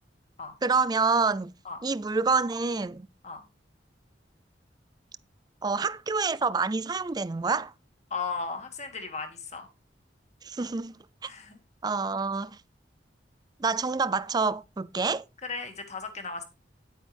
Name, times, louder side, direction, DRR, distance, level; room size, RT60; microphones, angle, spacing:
voice 1, 0.6-1.5 1.8-3.1 5.6-7.7 10.4-10.9 11.2-11.3 11.8-12.6 13.6-15.2, right 4 dB, 25° right, 0.4 m, -27 dB
voice 2, 8.1-9.7 11.2-11.6 15.4-16.4, left 4 dB, 40° left, 2.1 m, -36 dB
10.0 x 9.3 x 3.5 m
head